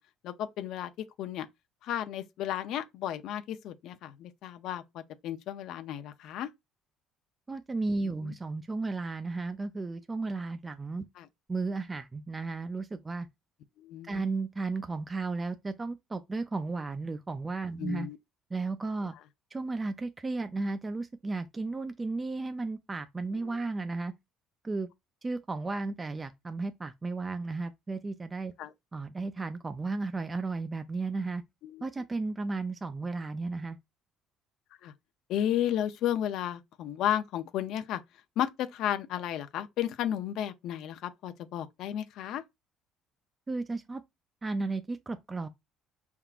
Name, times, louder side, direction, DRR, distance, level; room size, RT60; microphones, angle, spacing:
voice 1, 0.2-1.5 1.8-6.5 8.2-8.3 11.2-11.3 13.8-14.3 17.8-18.2 23.4-23.6 28.6-28.7 31.6-31.8 34.8-34.9 35.3-38.0 38.4-42.4, left 11 dB, 70° left, 0.5 m, -33 dB
voice 2, 7.5-11.0 11.5-13.3 14.0-18.1 18.5-19.1 19.5-24.1 24.6-24.9 25.2-28.5 28.9-31.4 31.8-33.8 43.5-44.0 44.4-45.5, right 3 dB, 20° right, 0.4 m, -34 dB
5.6 x 3.6 x 2.4 m
cardioid pair, 115°, 0 cm